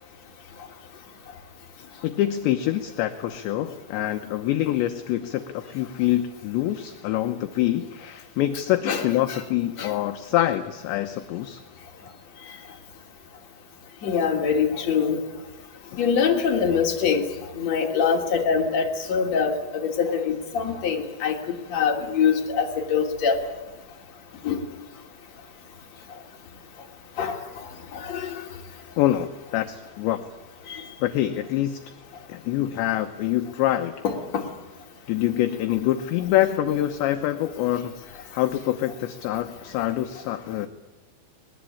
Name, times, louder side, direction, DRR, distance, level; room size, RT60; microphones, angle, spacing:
voice 1, 2.0-11.6 29.0-30.2 31.0-31.8 32.3-33.9 35.1-40.7, left 13 dB, 75° left, 7 dB, 2.8 m, -25 dB
voice 2, 14.0-15.2 16.0-17.3 17.6-23.4 24.4-24.6 27.2-27.4 27.9-28.4 30.7-30.8 34.0-34.4, left 6 dB, 35° left, 1 dB, 3.5 m, -24 dB
24.0 x 20.0 x 8.5 m, 1.2 s
omnidirectional pair, 6.0 m